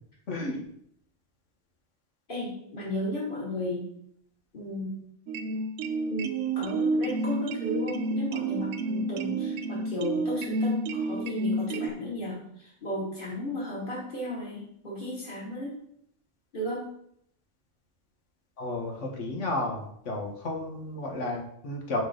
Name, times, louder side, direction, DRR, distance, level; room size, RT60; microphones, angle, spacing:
voice 1, 0.3-0.6 18.6-22.0, left 2 dB, 75° left, 0 dB, 1.6 m, -32 dB
voice 2, 2.3-3.8 4.5-4.9 6.1-15.8 16.5-16.9, equal, 45° left, -5 dB, 2.6 m, -34 dB
sound 1, 5.3-11.9, right 2 dB, 80° right, 0.9 m, -30 dB
6.1 x 5.2 x 3.8 m, 0.70 s
omnidirectional pair, 1.3 m